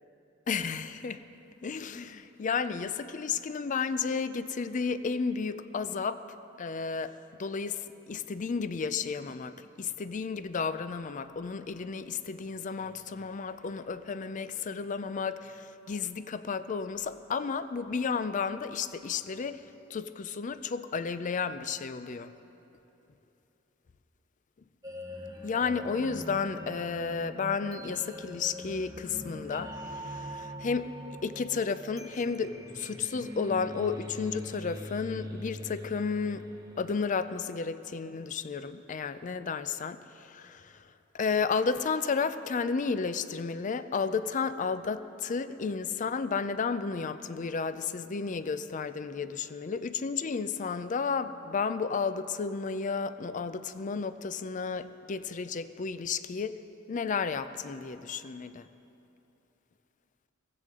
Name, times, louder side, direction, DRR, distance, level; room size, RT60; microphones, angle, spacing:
voice 1, 0.5-1.2 1.6-6.2 6.6-19.6 19.9-22.3 25.4-30.9 31.2-36.5 36.8-40.8 41.1-56.6 56.9-58.7, left 5 dB, 40° left, 13 dB, 0.4 m, -32 dB
sound 1, 24.8-37.8, equal, 20° right, 0.9 m, -43 dB
17.0 x 15.5 x 3.7 m, 2.9 s
head